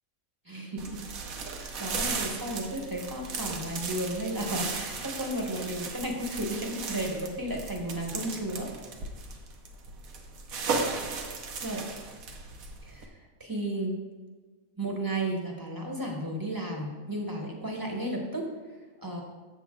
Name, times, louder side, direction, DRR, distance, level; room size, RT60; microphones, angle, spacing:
voice 1, 0.5-1.0 1.6-8.7 11.6-11.9 12.8-13.1 13.4-13.9 14.8-18.5 19.0-19.2, right 1 dB, 15° right, 1 dB, 1.0 m, -33 dB
sound 1, 0.8-13.1, right 4 dB, 70° right, 1.3 m, -36 dB
7.6 x 7.0 x 3.7 m, 1.4 s
omnidirectional pair, 1.5 m